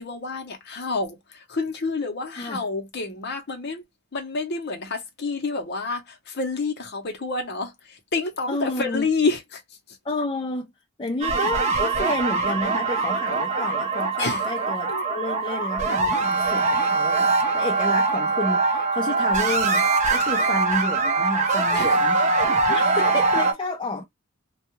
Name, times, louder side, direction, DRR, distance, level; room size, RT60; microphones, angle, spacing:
voice 1, 0.0-3.8 4.1-9.6 9.9-10.0 14.2-14.5 14.9-15.0 20.2-20.5 21.7-22.0, left 3 dB, 50° left, 0.8 m, -29 dB
voice 2, 8.5-9.1 10.0-10.7 11.0-22.4 22.7-24.0, left 2 dB, 25° left, 0.5 m, -30 dB
sound 1, 11.2-23.5, right 3 dB, 35° right, 0.7 m, -22 dB
2.3 x 2.2 x 2.9 m
head